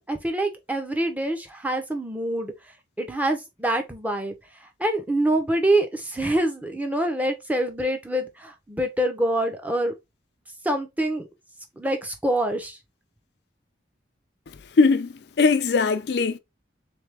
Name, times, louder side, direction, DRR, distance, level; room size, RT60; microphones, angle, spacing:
voice 1, 0.1-2.5 3.0-4.3 4.6-9.9 10.6-11.3 11.8-12.8, right 1 dB, 10° right, 0.7 m, -25 dB
voice 2, 14.8-16.4, left 4 dB, 65° left, 0.4 m, -20 dB
3.4 x 3.3 x 3.3 m
head